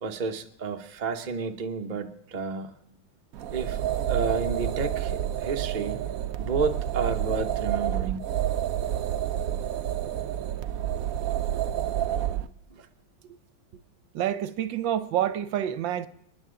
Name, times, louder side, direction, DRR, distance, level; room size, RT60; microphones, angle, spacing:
voice 1, 0.0-2.7 3.5-3.8 4.1-6.1 6.4-8.2 12.8-12.9, right 4 dB, 45° right, 0.6 m, -31 dB
sound 1, 3.3-12.5, right 11 dB, 85° right, 0.7 m, -29 dB
voice 2, 14.1-16.1, right 11 dB, 70° right, 1.3 m, -28 dB
28.0 x 10.5 x 3.8 m
omnidirectional pair, 2.3 m